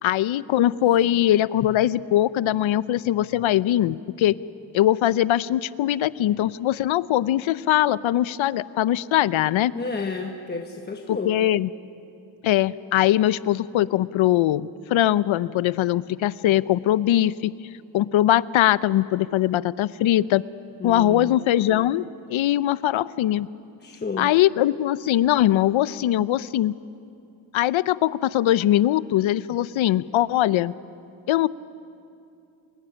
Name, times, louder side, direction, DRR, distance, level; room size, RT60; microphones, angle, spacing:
voice 1, 0.0-4.4 4.7-9.7 11.1-11.7 12.4-17.5 17.9-20.4 20.8-23.5 24.2-26.7 27.5-30.7 31.3-31.5, left 13 dB, 75° left, 17 dB, 0.8 m, -21 dB
voice 2, 9.7-11.4 20.8-21.3 23.8-24.3, left 4 dB, 20° left, 2 dB, 1.2 m, -31 dB
28.5 x 20.5 x 10.0 m, 2.6 s
wide cardioid pair, 165°, 47 cm